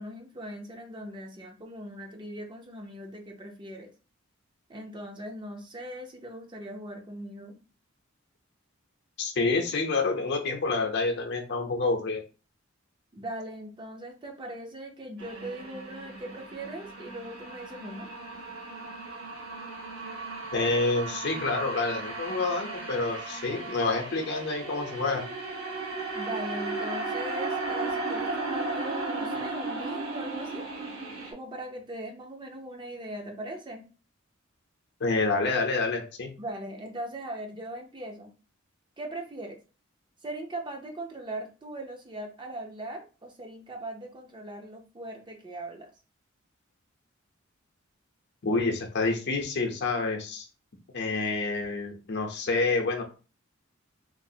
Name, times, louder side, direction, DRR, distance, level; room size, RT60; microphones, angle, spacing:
voice 1, 0.0-3.9 4.7-7.6 13.1-18.1 26.1-30.6 31.3-33.8 36.4-38.3 39.0-39.6 40.2-45.9, right 1 dB, 25° right, 2 dB, 0.5 m, -40 dB
voice 2, 9.2-12.2 20.5-25.2 35.0-36.3 48.4-50.5 50.9-53.0, left 3 dB, 55° left, 2 dB, 0.7 m, -28 dB
sound 1, 15.2-31.3, right 3 dB, 85° right, 1.0 m, -35 dB
3.2 x 2.4 x 2.7 m, 0.35 s
head